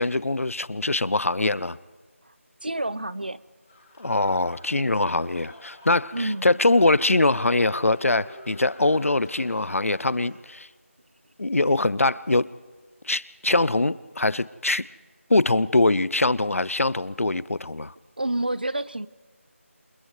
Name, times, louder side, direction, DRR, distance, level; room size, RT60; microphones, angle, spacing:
voice 1, 0.0-1.8 4.0-10.7 11.4-12.5 13.0-14.9 15.3-17.9, left 2 dB, 75° left, 19 dB, 0.6 m, -23 dB
voice 2, 2.6-3.4 6.1-6.6 18.2-19.1, right 1 dB, 40° right, 17 dB, 0.5 m, -28 dB
sound 1, 3.7-10.4, left 1 dB, 10° left, 1.8 m, -47 dB
29.5 x 28.0 x 3.2 m, 1.4 s
figure-of-eight pair, 180°, 8 cm